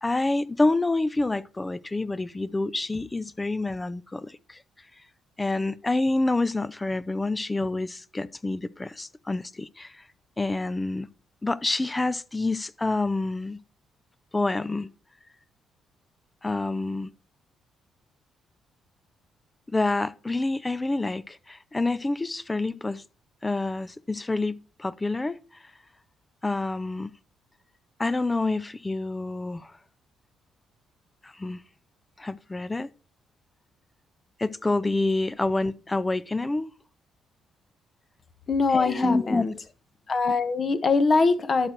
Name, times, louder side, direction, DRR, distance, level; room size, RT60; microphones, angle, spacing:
voice 1, 0.0-4.6 5.4-9.9 10.4-11.1 11.4-13.6 14.3-14.9 16.4-17.1 19.7-23.0 23.4-25.4 26.4-27.1 28.0-29.7 31.2-31.6 32.2-32.9 34.4-36.7 38.7-39.4, left 2 dB, 15° left, 0.5 m, -27 dB
voice 2, 38.5-39.5 40.1-41.7, left 4 dB, 40° left, 1.2 m, -23 dB
11.5 x 6.6 x 4.5 m
cardioid pair, 90°, 0 cm